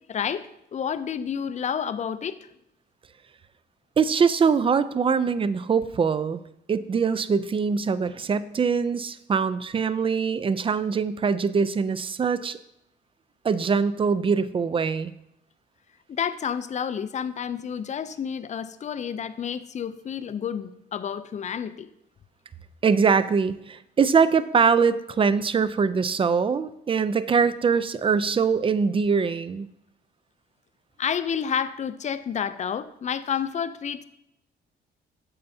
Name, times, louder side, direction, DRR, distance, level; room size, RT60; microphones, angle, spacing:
voice 1, 0.1-2.5 16.1-21.9 31.0-34.0, left 7 dB, 35° left, 13 dB, 0.4 m, -30 dB
voice 2, 4.0-6.4 6.7-12.6 13.4-15.1 22.8-29.7, right 5 dB, 25° right, 15 dB, 0.4 m, -23 dB
9.3 x 6.8 x 2.7 m, 0.79 s
cardioid pair, 90°, 20 cm